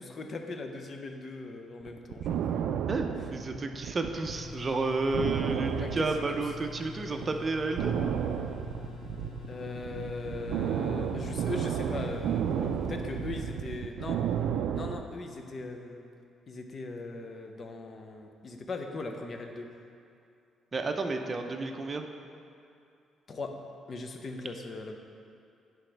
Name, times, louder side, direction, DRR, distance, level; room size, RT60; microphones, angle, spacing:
voice 1, 0.0-2.4 3.2-3.3 5.8-6.5 9.5-14.2 14.7-16.1 16.5-19.7 23.3-23.6 23.9-25.0, left 3 dB, 40° left, 4 dB, 0.7 m, -39 dB
sound 1, 1.9-4.4 4.7-4.8 5.1-6.8 7.2-7.3 7.8-15.0, right 8 dB, 80° right, 0.3 m, -32 dB
voice 2, 2.9-7.9 20.7-22.0, right 3 dB, 30° right, 4 dB, 0.6 m, -31 dB
sound 2, 4.3-13.6, left 4 dB, 90° left, 0.6 m, -44 dB
10.0 x 4.8 x 3.3 m, 2.5 s
cardioid pair, 115°, 0 cm